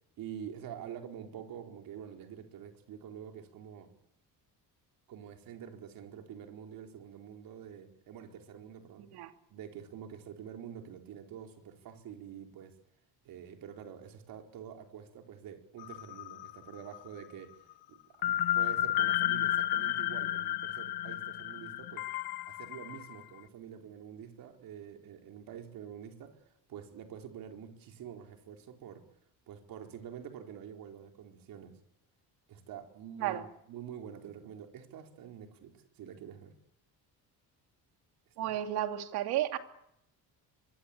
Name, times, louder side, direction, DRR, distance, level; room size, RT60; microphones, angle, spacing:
voice 1, 0.2-3.9 5.1-9.1 9.5-12.7 13.2-17.6 17.9-22.1 22.5-26.4 26.7-29.0 29.5-31.7 32.5-36.5 38.4-38.6, right 8 dB, 60° right, 4 dB, 4.4 m, -47 dB
voice 2, 9.0-9.3 33.2-33.4 38.4-39.6, right 12 dB, 85° right, 7 dB, 2.6 m, -33 dB
sound 1, 15.8-16.7 16.9-17.0 18.2-23.1, left 13 dB, 80° left, 1.4 m, -32 dB
24.0 x 23.5 x 8.8 m, 0.79 s
cardioid pair, 165°, 38 cm